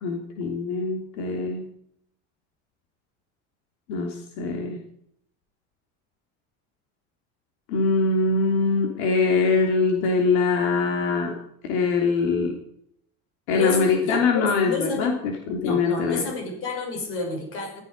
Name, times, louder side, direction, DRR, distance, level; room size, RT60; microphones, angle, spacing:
voice 1, 0.0-1.6 3.9-4.8 7.7-11.3 11.6-12.5 13.5-16.2, left 4 dB, 75° left, 2 dB, 3.2 m, -23 dB
voice 2, 13.5-15.1 15.5-17.8, left 3 dB, 40° left, 2 dB, 5.8 m, -30 dB
15.5 x 13.5 x 5.4 m, 0.71 s
cardioid pair, 170°, 32 cm